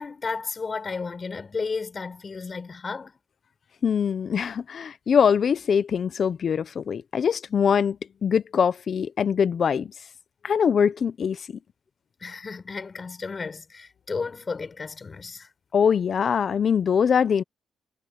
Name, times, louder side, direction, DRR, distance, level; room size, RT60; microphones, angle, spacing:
voice 1, 0.0-3.1 12.2-15.5, left 4 dB, 35° left, 7.0 m, -33 dB
voice 2, 3.8-8.0 8.2-9.9 10.4-11.4 15.7-17.4, left 7 dB, 50° left, 0.9 m, -23 dB
cardioid pair, 90°, 0 cm